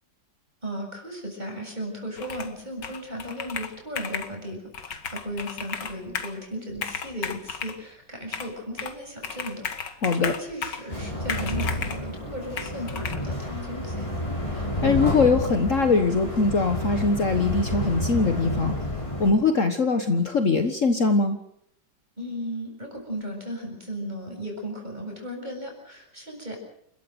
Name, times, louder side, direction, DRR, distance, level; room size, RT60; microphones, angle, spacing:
voice 1, 0.6-4.6 4.9-14.1 22.2-26.6, equal, 25° right, 2 dB, 7.6 m, -36 dB
Computer keyboard, 2.2-2.6 2.8-4.3 4.7-6.4 6.7-7.8 8.3-9.0 9.2-10.9 11.3-12.0 12.6-13.2, left 6 dB, 80° left, 2.3 m, -34 dB
voice 2, 10.0-10.3 14.5-18.8 19.2-21.4, left 4 dB, 50° left, 7 dB, 1.7 m, -22 dB
sound 1, 10.9-19.3, left 1 dB, 15° left, 6.5 m, -30 dB
30.0 x 13.5 x 8.0 m, 0.72 s
omnidirectional pair, 1.9 m